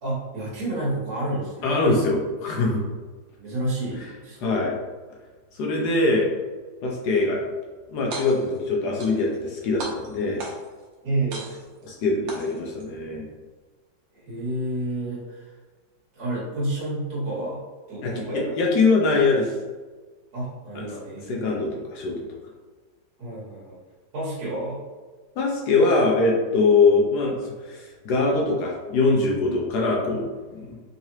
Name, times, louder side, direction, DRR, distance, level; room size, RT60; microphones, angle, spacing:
voice 1, 0.0-1.8 3.4-4.6 11.0-11.5 14.1-15.5 16.1-17.6 17.9-18.5 20.3-21.5 23.2-23.8 24.1-24.8, right 1 dB, 55° right, -9 dB, 1.7 m, -30 dB
voice 2, 1.6-2.8 4.4-4.8 5.5-6.3 6.8-7.4 7.9-10.4 11.8-13.3 18.0-19.5 20.7-20.9 21.3-22.2 25.4-30.8, left 3 dB, 70° left, -1 dB, 1.1 m, -22 dB
sound 1, 8.0-8.6 9.0-9.5 9.8-10.8 11.3-11.8 12.3-12.8, right 2 dB, 85° right, 1.4 m, -37 dB
3.8 x 3.0 x 2.7 m, 1.3 s
omnidirectional pair, 2.0 m